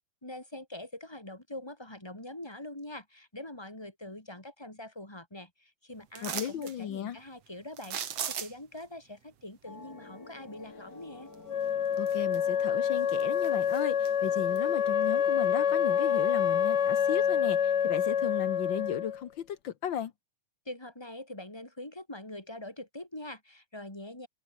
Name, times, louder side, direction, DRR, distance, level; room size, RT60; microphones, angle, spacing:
voice 1, 0.2-11.3 20.6-24.3, left 1 dB, 5° left, 4.1 m, -44 dB
sound 1, 6.1-6.8 7.8-8.8 11.3-11.4 11.9-12.6 13.0-14.1 14.6-14.7, right 9 dB, 50° right, 2.6 m, -37 dB
voice 2, 6.2-7.2 12.0-20.1, left 9 dB, 85° left, 1.0 m, -35 dB
sound 2, 9.7-19.0, left 3 dB, 25° left, 4.0 m, -51 dB
Wind instrument woodwind instrument, 11.5-19.2, left 8 dB, 60° left, 1.1 m, -27 dB
omnidirectional pair, 3.9 m